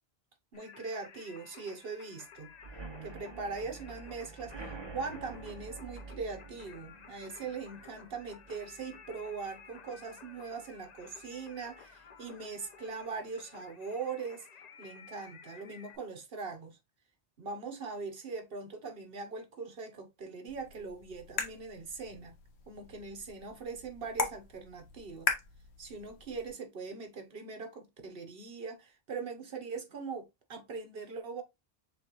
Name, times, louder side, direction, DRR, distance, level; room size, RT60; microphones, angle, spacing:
Singing, 0.5-16.0, left 6 dB, 45° left, 0.6 m, -54 dB
voice 1, 0.5-2.5 3.0-14.5 14.8-16.8 17.4-22.3 22.7-25.3 25.8-31.4, right 4 dB, 65° right, 1.2 m, -41 dB
sound 1, 2.6-10.2 10.6-11.0 11.2-11.3 11.7-11.8, right 3 dB, 30° right, 0.7 m, -48 dB
sound 2, 20.5-26.5, left 5 dB, 85° left, 1.1 m, -39 dB
6.8 x 2.4 x 3.0 m
omnidirectional pair, 1.1 m